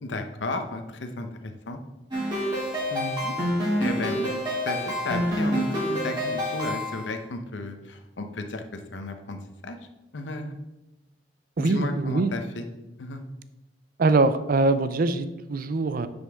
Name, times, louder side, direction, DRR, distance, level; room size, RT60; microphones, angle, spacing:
voice 1, 0.0-1.8 2.9-3.3 3.8-9.8 10.1-10.6 11.6-12.6 13.0-13.2, left 2 dB, 90° left, 7 dB, 0.8 m, -34 dB
sound 1, 2.1-7.1, equal, 25° right, 3.0 m, -27 dB
voice 2, 11.6-12.3 14.0-16.1, right 3 dB, 50° right, 13 dB, 0.5 m, -23 dB
9.9 x 5.4 x 3.5 m, 1.1 s
head